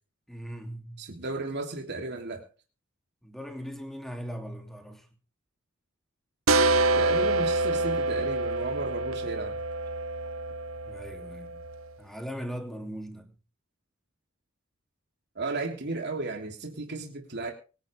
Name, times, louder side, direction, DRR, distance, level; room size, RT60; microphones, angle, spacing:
voice 1, 0.3-1.0 3.2-5.1 10.8-11.6 12.0-13.3, equal, ahead, 2.9 m, -39 dB
voice 2, 1.0-2.4 6.9-9.6 15.3-17.5, right 3 dB, 55° right, 3.2 m, -34 dB
sound 1, 6.5-11.9, right 2 dB, 85° right, 1.2 m, -27 dB
24.5 x 11.0 x 3.5 m
head